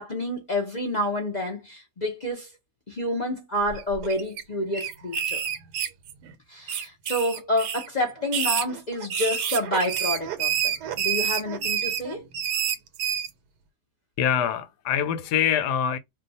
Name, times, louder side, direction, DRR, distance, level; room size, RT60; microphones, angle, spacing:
voice 1, 0.0-2.5 2.9-5.4 6.5-12.2, left 1 dB, 40° left, 0.6 m, -29 dB
sound 1, 3.7-4.4 4.7-6.3 6.7-7.9 8.2-13.3, right 8 dB, 80° right, 1.1 m, -28 dB
voice 2, 14.2-16.0, left 8 dB, 85° left, 1.2 m, -24 dB
2.7 x 2.2 x 4.0 m
omnidirectional pair, 1.7 m